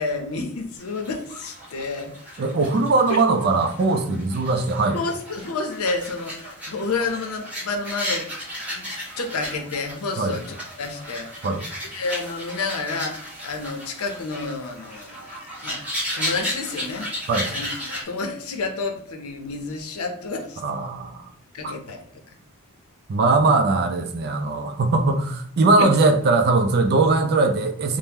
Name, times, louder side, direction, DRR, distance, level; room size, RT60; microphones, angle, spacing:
voice 1, 0.0-2.4 3.1-3.2 4.9-8.3 8.7-8.9 9.2-10.4 10.8-11.3 11.8-15.8 16.1-17.1 17.5-20.6 21.5-22.0 25.8-25.9, left 3 dB, 80° left, 4 dB, 0.6 m, -30 dB
sound 1, 0.8-18.0, equal, 5° right, 1.1 m, -34 dB
voice 2, 2.4-5.0 10.2-10.4 11.4-11.6 17.3-17.5 20.6-21.3 21.6-21.7 23.1-28.0, right 3 dB, 50° right, 7 dB, 0.4 m, -20 dB
2.8 x 2.1 x 3.4 m, 0.65 s
head